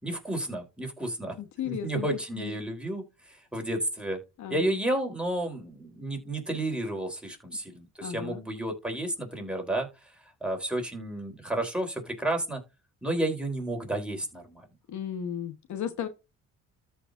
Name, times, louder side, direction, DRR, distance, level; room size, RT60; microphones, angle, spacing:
voice 1, 0.0-1.4 1.6-4.2 4.5-10.1 10.4-12.6 13.0-14.7, right 1 dB, 5° right, 3.6 m, -31 dB
voice 2, 1.4-2.1 2.3-2.6 4.4-4.7 8.0-8.4 14.9-16.1, left 9 dB, 70° left, 1.2 m, -35 dB
13.5 x 5.0 x 2.6 m
cardioid pair, 90°, 30 cm